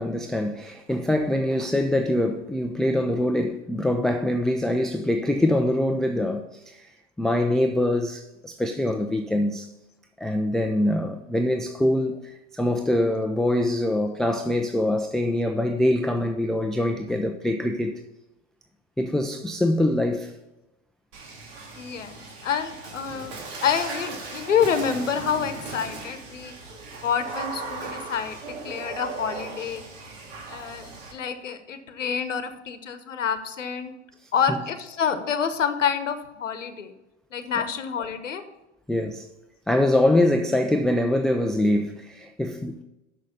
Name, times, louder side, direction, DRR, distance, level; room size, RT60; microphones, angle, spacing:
voice 1, 0.0-6.9 7.2-9.7 10.2-18.0 19.0-20.3 34.5-34.6 38.9-39.3 39.7-42.8, left 1 dB, ahead, 0.4 m, -24 dB
Water / Splash splatter, 21.1-31.1, right 3 dB, 65° right, 2.1 m, -37 dB
voice 2, 21.8-23.3 23.6-26.5 27.0-29.8 30.5-33.9 34.3-36.9 37.3-38.4, left 7 dB, 85° left, 1.0 m, -28 dB
6.5 x 6.4 x 6.9 m
hypercardioid pair, 90°, 36 cm